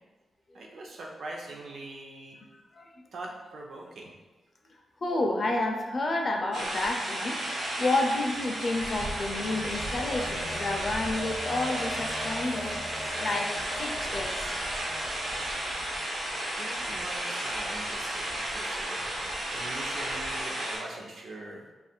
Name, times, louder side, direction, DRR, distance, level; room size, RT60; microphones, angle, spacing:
voice 1, 0.5-2.4 3.1-4.1 16.6-21.6, right 2 dB, 70° right, -1 dB, 0.6 m, -42 dB
voice 2, 2.5-2.9 5.0-14.6 15.5-15.6 16.2-16.5, left 2 dB, 35° left, 2 dB, 0.4 m, -31 dB
sound 1, 6.5-20.8, right 1 dB, 85° right, 1.0 m, -33 dB
sound 2, 7.2-17.4, left 1 dB, 80° left, 0.6 m, -43 dB
2.9 x 2.4 x 4.2 m, 1.2 s
wide cardioid pair, 165°, 0 cm